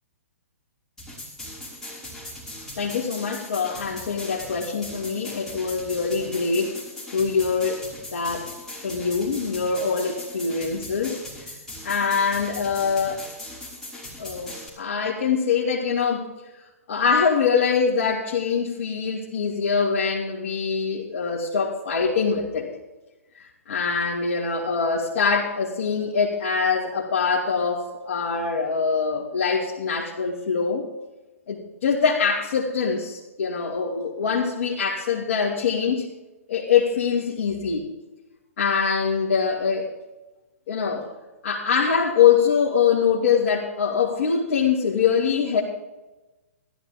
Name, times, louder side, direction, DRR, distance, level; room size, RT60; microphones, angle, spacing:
sound 1, 1.0-14.7, left 1 dB, 5° left, 5.7 m, -39 dB
voice 1, 2.8-6.8 7.1-7.8 8.1-8.5 8.8-11.2 11.8-13.3 14.2-16.3 16.9-22.7 23.4-30.8 31.5-36.1 36.5-37.9 38.6-39.9 40.7-41.1 41.4-45.6, left 6 dB, 55° left, -5 dB, 2.8 m, -23 dB
15.5 x 13.5 x 3.7 m, 1.1 s
hypercardioid pair, 130°, 8 cm